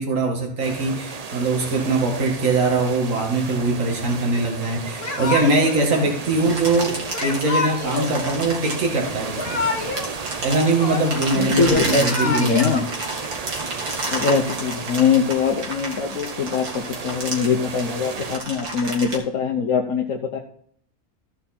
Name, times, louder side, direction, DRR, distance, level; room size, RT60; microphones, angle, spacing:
voice 1, 0.0-9.6 10.4-12.7, right 2 dB, 60° right, 0 dB, 2.3 m, -22 dB
sound 1, 0.6-18.4, right 5 dB, 45° right, 0.5 m, -34 dB
Yell / Crying sobbing, 5.0-5.8 7.1-8.1 9.2-10.1 10.4-11.4 11.9-12.8, left 3 dB, 40° left, 1.5 m, -27 dB
sound 2, 6.3-9.5 10.0-19.2, right 2 dB, 80° right, 2.6 m, -31 dB
voice 2, 11.3-12.8 14.1-20.4, left 5 dB, 65° left, 2 dB, 1.2 m, -22 dB
14.5 x 5.6 x 4.2 m, 0.62 s
omnidirectional pair, 1.5 m